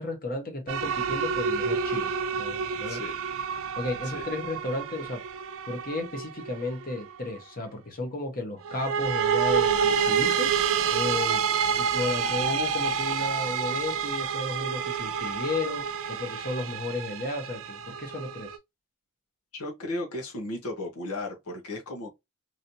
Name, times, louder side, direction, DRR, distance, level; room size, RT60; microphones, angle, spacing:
voice 1, 0.0-2.1 2.4-3.0 3.8-5.2 5.7-11.4 11.8-18.5, left 2 dB, 40° left, 1.1 m, -33 dB
sound 1, 0.7-7.2 8.6-18.6, right 6 dB, 65° right, 0.4 m, -28 dB
voice 2, 2.9-3.2 4.1-4.3 19.5-22.1, left 1 dB, 85° left, 1.0 m, -35 dB
3.1 x 2.8 x 2.6 m
head